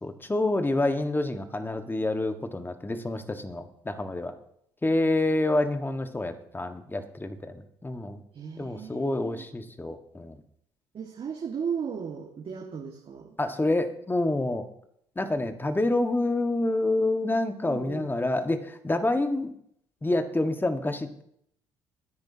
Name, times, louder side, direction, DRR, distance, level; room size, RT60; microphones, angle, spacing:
voice 1, 0.0-4.3 4.8-8.2 8.6-10.4 13.4-14.7 15.1-19.5 20.0-21.2, left 2 dB, 15° left, 8 dB, 1.5 m, -27 dB
voice 2, 8.3-9.4 10.9-13.3 17.6-18.1, right 6 dB, 45° right, 1 dB, 1.8 m, -36 dB
22.0 x 10.5 x 2.8 m, 0.71 s
hypercardioid pair, 55°, 13 cm